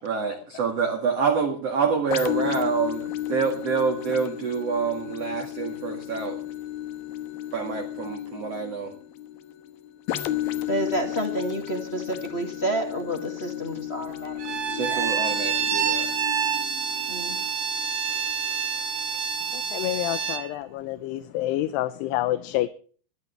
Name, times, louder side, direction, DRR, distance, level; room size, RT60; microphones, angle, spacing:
voice 1, 0.0-6.4 7.5-8.9 14.7-16.1, right 5 dB, 45° right, 2 dB, 2.5 m, -27 dB
sound 1, 2.1-19.6 20.2-20.3, left 13 dB, 70° left, 2.7 m, -34 dB
voice 2, 10.7-15.1 17.1-17.4, right 1 dB, 25° left, 3 dB, 1.6 m, -30 dB
Bowed string instrument, 14.4-20.5, right 7 dB, 75° right, 3.5 m, -27 dB
voice 3, 19.5-22.7, left 15 dB, 90° left, 11 dB, 2.9 m, -28 dB
21.5 x 12.0 x 3.3 m, 0.42 s
omnidirectional pair, 4.7 m